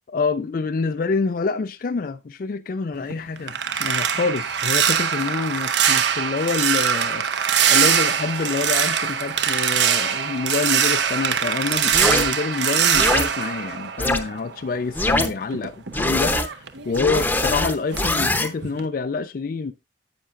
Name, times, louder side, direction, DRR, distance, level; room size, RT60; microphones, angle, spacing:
voice 1, 0.1-3.5 3.8-7.2 7.7-19.7, left 4 dB, 50° left, 0.4 m, -26 dB
sound 1, 2.9-14.6 14.9-17.6 17.9-18.2 18.6-18.9, right 8 dB, 75° right, 0.9 m, -22 dB
sound 2, 11.9-12.2 12.9-13.2 14.0-14.2 14.9-15.3 15.9-16.5 16.9-18.5, left 1 dB, 10° left, 0.8 m, -22 dB
10.0 x 8.6 x 2.5 m
head